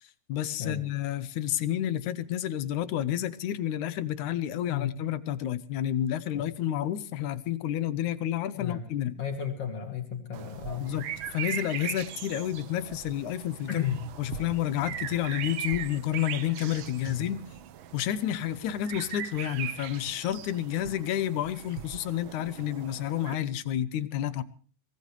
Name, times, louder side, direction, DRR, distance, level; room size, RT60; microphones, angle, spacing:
voice 1, 0.3-9.2 10.8-13.9 14.2-17.4 17.9-24.4, left 11 dB, 80° left, 15 dB, 2.4 m, -30 dB
voice 2, 8.5-8.8 9.2-11.1 13.7-14.0 17.1-17.3, left 8 dB, 55° left, 3 dB, 3.5 m, -33 dB
sound 1, 10.3-23.4, right 10 dB, 75° right, 1.2 m, -40 dB
23.5 x 18.0 x 3.2 m, 0.40 s
omnidirectional pair, 3.4 m